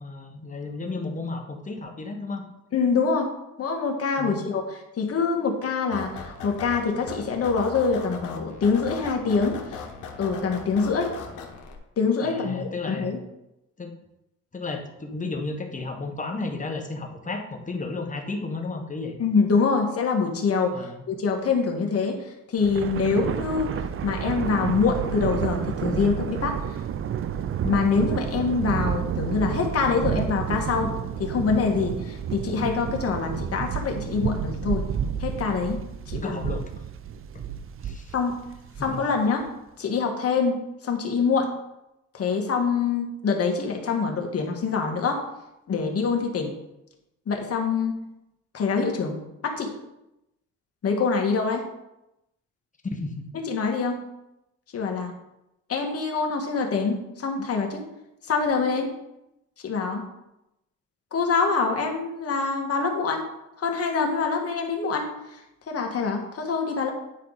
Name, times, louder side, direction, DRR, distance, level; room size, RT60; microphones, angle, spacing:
voice 1, 0.0-2.4 4.2-4.4 12.2-13.1 13.8-13.9 14.5-19.2 20.7-21.0 36.2-36.6 37.3-37.4 37.8-38.1 38.8-39.0 52.8-53.3, left 3 dB, 25° left, 4 dB, 1.3 m, -33 dB
voice 2, 2.7-3.3 3.6-4.6 5.0-9.9 10.2-11.1 12.0-13.2 19.2-20.8 21.1-26.6 27.6-30.9 31.2-34.9 35.2-35.8 36.1-36.4 38.1-38.4 38.8-39.5 39.8-40.6 40.8-41.5 42.1-45.2 45.7-46.5 47.3-48.0 48.5-49.8 50.8-51.7 53.3-54.0 54.7-55.1 55.7-57.8 58.3-58.9 59.6-60.0 61.1-63.2 63.6-65.1 65.7-66.9, left 5 dB, 50° left, 2 dB, 1.7 m, -25 dB
sound 1, 5.9-11.8, left 6 dB, 90° left, 1.2 m, -38 dB
Thunder, 22.6-39.2, right 8 dB, 45° right, 0.5 m, -30 dB
9.5 x 4.7 x 4.0 m, 0.88 s
cardioid pair, 90°, 30 cm